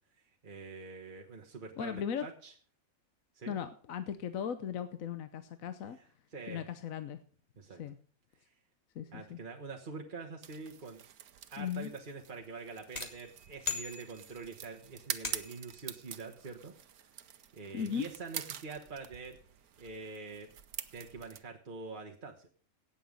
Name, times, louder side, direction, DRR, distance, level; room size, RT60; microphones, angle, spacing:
voice 1, 0.4-2.5 3.3-3.6 6.3-6.6 7.6-7.8 9.1-11.0 11.5-16.7 17.0-17.1 17.5-19.4 19.8-20.5 20.9-22.5, right 4 dB, 35° right, 1 dB, 1.3 m, -45 dB
voice 2, 1.8-2.3 3.5-6.0 6.5-7.2 7.8-8.0 8.9-9.4 11.6-11.9 17.7-18.1, left 8 dB, 70° left, 10 dB, 1.2 m, -37 dB
sound 1, 10.4-21.4, right 10 dB, 85° right, 1.3 m, -46 dB
sound 2, 13.0-14.6 15.2-15.8, left 5 dB, 30° left, 1.5 m, -40 dB
17.0 x 7.2 x 5.2 m, 0.43 s
omnidirectional pair, 1.5 m